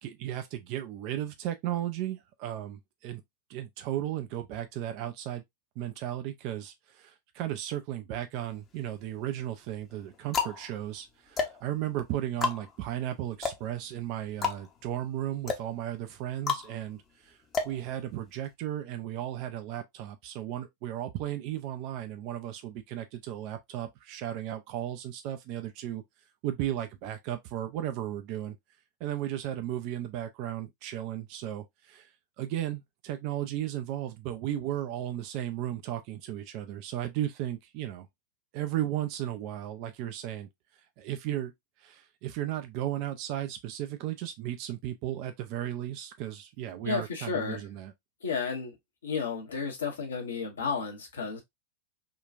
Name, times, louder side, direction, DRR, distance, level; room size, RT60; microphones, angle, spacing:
voice 1, 0.0-3.2 3.5-5.4 5.8-17.4 17.6-26.0 26.4-28.6 29.0-32.1 32.4-38.1 38.5-40.5 41.0-41.5 41.8-47.9, right 12 dB, 45° right, 0.4 m, -35 dB
sound 1, 8.4-9.1 9.8-18.5, left 5 dB, 25° left, 0.7 m, -34 dB
voice 2, 46.8-47.6 48.2-48.8 49.0-51.4, left 5 dB, 70° left, 1.0 m, -32 dB
3.7 x 2.3 x 2.4 m
figure-of-eight pair, 90°, 0 cm